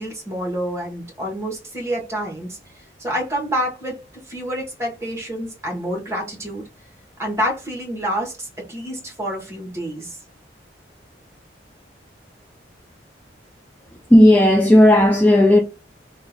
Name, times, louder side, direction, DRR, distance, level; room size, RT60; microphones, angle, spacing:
voice 1, 0.0-2.6 3.0-6.7 7.2-10.2, equal, 15° right, 1.2 m, -28 dB
voice 2, 14.1-15.6, left 1 dB, 10° left, 0.3 m, -12 dB
2.8 x 2.4 x 3.5 m
head